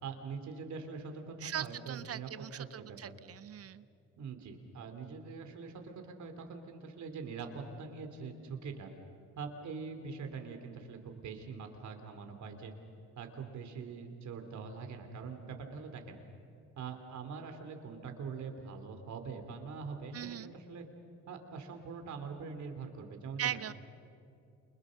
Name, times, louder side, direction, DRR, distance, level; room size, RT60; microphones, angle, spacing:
voice 1, 0.0-3.2 4.2-8.9 9.4-12.7 13.1-16.2 16.8-20.8 21.3-23.6, right 5 dB, 70° right, 5 dB, 3.2 m, -43 dB
voice 2, 1.4-3.8 20.1-20.5 23.4-23.7, right 10 dB, 50° right, 16 dB, 0.6 m, -39 dB
29.0 x 28.5 x 6.5 m, 2.5 s
cardioid pair, 90°, 30 cm